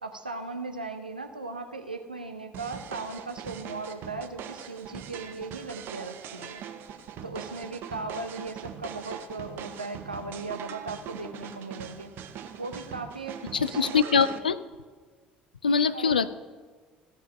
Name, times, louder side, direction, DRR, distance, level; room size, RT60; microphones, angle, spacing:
voice 1, 0.0-6.6 7.2-12.1 12.6-14.3 15.9-16.2, right 3 dB, 85° right, 7 dB, 0.7 m, -37 dB
sound 1, 2.5-14.4, right 9 dB, 50° right, 0.8 m, -41 dB
voice 2, 13.5-14.6 15.6-16.4, left 6 dB, 80° left, 15 dB, 0.3 m, -23 dB
15.0 x 5.4 x 6.4 m, 1.5 s
figure-of-eight pair, 55°, 5 cm